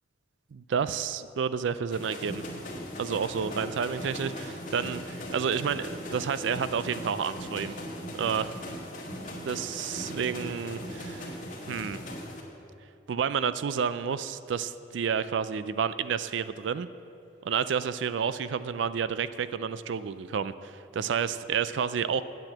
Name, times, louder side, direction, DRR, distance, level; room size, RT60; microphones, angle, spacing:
voice 1, 0.5-2.4 3.0-7.7 8.1-8.6 9.4-11.4 11.7-12.0 13.1-16.9 17.4-22.2, right 7 dB, 75° right, 14 dB, 0.4 m, -30 dB
sound 1, 1.9-12.4, equal, 40° left, 2.0 m, -39 dB
9.0 x 7.9 x 8.7 m, 2.6 s
head